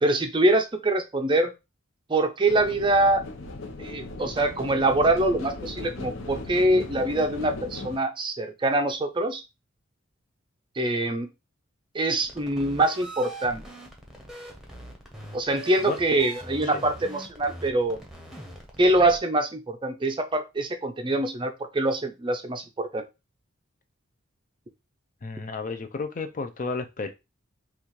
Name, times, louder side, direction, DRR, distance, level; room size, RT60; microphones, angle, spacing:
voice 1, 0.0-1.5 2.1-3.2 3.8-9.4 10.8-11.3 11.9-13.6 15.3-18.0 18.8-23.0, right 2 dB, 25° right, 0.5 m, -24 dB
sound 1, 2.5-8.0, left 2 dB, 70° left, 0.8 m, -38 dB
sound 2, 12.2-19.2, right 1 dB, ahead, 0.9 m, -42 dB
voice 2, 25.2-27.1, left 3 dB, 40° left, 0.5 m, -32 dB
5.9 x 2.4 x 3.1 m
head